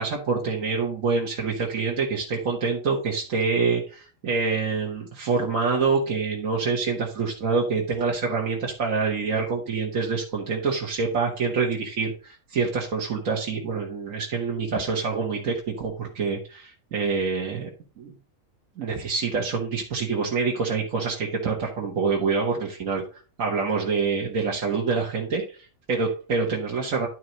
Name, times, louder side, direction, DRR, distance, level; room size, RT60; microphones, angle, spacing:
voice 1, 0.0-17.7 18.0-18.1 18.8-27.1, right 4 dB, 65° right, -2 dB, 1.8 m, -26 dB
11.5 x 4.6 x 3.9 m, 0.35 s
omnidirectional pair, 1.5 m